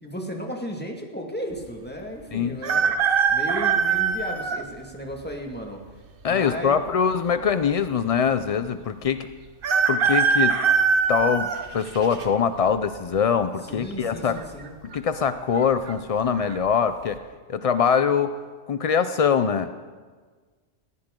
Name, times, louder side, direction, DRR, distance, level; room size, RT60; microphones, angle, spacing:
voice 1, 0.0-3.0 3.3-5.8 6.3-6.8 13.6-14.7, equal, 10° left, 1 dB, 1.8 m, -34 dB
sound 1, 2.6-4.6 5.3-5.4 6.5-7.1 7.4-7.5 7.7-7.8 9.6-12.2 12.8-13.2 14.3-14.7 14.9-15.0 15.5-15.9 16.4-16.6, right 6 dB, 50° right, 0.9 m, -22 dB
voice 2, 6.2-9.3 9.9-10.6 11.1-14.4 14.9-17.2 17.5-18.3 18.7-19.7, left 7 dB, 70° left, 11 dB, 0.3 m, -23 dB
19.5 x 15.0 x 3.7 m, 1.5 s
omnidirectional pair, 1.3 m